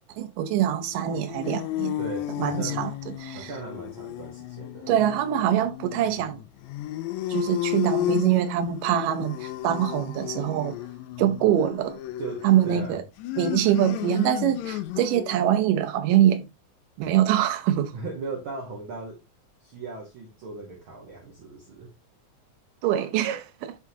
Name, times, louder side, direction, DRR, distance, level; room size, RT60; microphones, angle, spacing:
voice 1, 0.0-2.0 2.4-3.5 4.9-6.4 7.3-10.8 11.2-12.0 12.4-13.0 13.4-16.5 17.0-17.9 22.8-23.8, right 11 dB, 90° right, 2.4 m, -24 dB
sound 1, 0.9-15.4, left 14 dB, 80° left, 1.7 m, -33 dB
voice 2, 2.0-2.9 3.3-4.9 12.2-13.0 17.9-19.2 19.6-21.9, right 4 dB, 55° right, 1.6 m, -38 dB
9.4 x 3.7 x 2.8 m
omnidirectional pair, 3.7 m